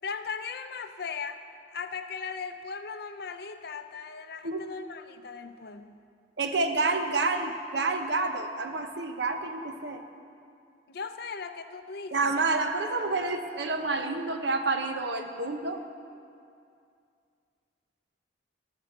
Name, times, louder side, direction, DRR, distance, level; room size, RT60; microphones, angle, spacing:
voice 1, 0.0-1.4 1.7-6.0 10.9-12.3, left 5 dB, 60° left, 9 dB, 0.6 m, -38 dB
voice 2, 6.4-10.0 12.1-15.8, right 3 dB, 65° right, 6 dB, 0.9 m, -29 dB
13.5 x 8.9 x 6.7 m, 2.4 s
head